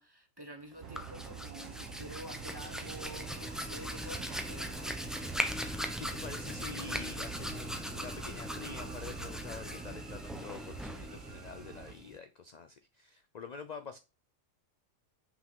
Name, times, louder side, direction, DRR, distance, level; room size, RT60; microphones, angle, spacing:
voice 1, 0.0-4.7, right 1 dB, 20° right, 1.0 m, -48 dB
Hands, 0.8-12.2, equal, ahead, 0.5 m, -39 dB
sound 1, 0.8-11.9, right 9 dB, 75° right, 1.2 m, -48 dB
voice 2, 6.0-14.0, left 5 dB, 60° left, 0.4 m, -47 dB
6.0 x 5.3 x 3.8 m
omnidirectional pair, 1.4 m